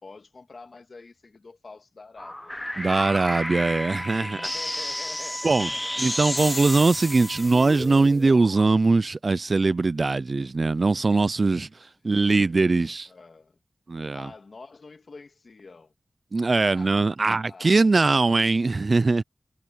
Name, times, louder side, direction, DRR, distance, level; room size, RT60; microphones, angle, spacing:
voice 1, 0.0-2.6 4.2-6.2 11.5-11.6 12.1-12.7 13.1-13.6 14.1-15.9 16.6-17.1 17.4-17.9, left 4 dB, 65° left, 2.7 m, -47 dB
sound 1, 2.2-8.6, left 1 dB, 15° left, 0.9 m, -32 dB
voice 2, 2.8-4.4 5.4-5.7 6.0-13.1 13.9-14.3 16.3-19.2, right 3 dB, 55° right, 0.5 m, -21 dB
Wind instrument woodwind instrument, 3.0-7.8, equal, ahead, 2.1 m, -40 dB
wide cardioid pair, 60°, 0 cm